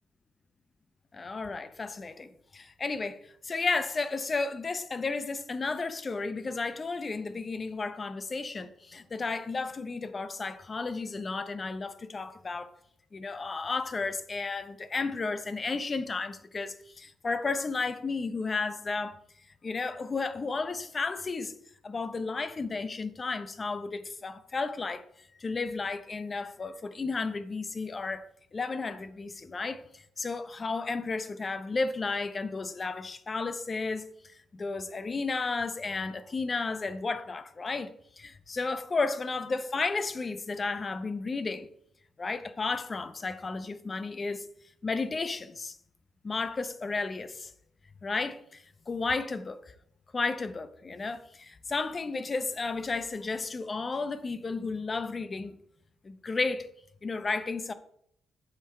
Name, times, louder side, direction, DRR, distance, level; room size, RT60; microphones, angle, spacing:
voice 1, 1.1-12.7 13.1-19.2 19.6-21.5 21.8-25.0 25.4-28.3 28.5-34.0 34.5-41.7 42.2-44.5 44.8-45.8 46.2-47.5 48.0-49.6 50.1-55.6 56.0-56.7 57.0-57.7, left 4 dB, 30° left, 0.7 m, -33 dB
7.9 x 5.6 x 4.5 m
cardioid pair, 90°, 0 cm